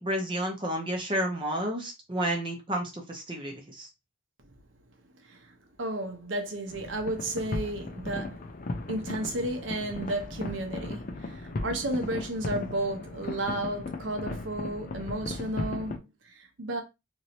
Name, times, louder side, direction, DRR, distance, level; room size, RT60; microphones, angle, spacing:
voice 1, 0.0-3.9, right 1 dB, 25° right, 0.6 m, -31 dB
voice 2, 5.2-8.4 8.9-16.8, right 1 dB, 85° right, 0.9 m, -33 dB
sound 1, 6.7-16.0, left 2 dB, 45° left, 0.5 m, -37 dB
3.0 x 2.8 x 2.7 m
head